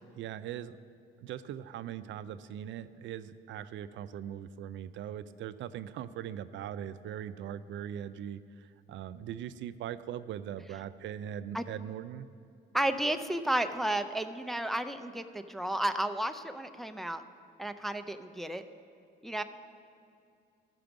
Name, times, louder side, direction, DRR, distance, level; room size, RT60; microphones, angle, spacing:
voice 1, 0.1-0.8 1.2-12.3, right 10 dB, 70° right, 13 dB, 0.4 m, -40 dB
voice 2, 12.7-17.2 17.6-18.6 19.2-19.4, right 1 dB, ahead, 8 dB, 0.4 m, -32 dB
13.0 x 6.0 x 5.2 m, 2.4 s
cardioid pair, 90°, 20 cm